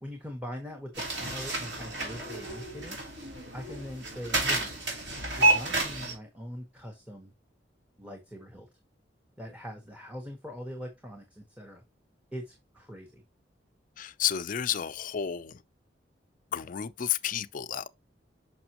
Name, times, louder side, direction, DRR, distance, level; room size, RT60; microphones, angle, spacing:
voice 1, 0.0-3.0 3.3-4.7 5.4-7.3 8.0-8.7 9.4-11.8 12.3-13.2, equal, 10° right, 1.1 m, -42 dB
sound 1, 1.0-6.1, right 2 dB, 75° right, 3.2 m, -30 dB
voice 2, 14.0-15.6 16.5-17.9, left 9 dB, 50° left, 0.4 m, -31 dB
5.9 x 5.9 x 2.9 m
head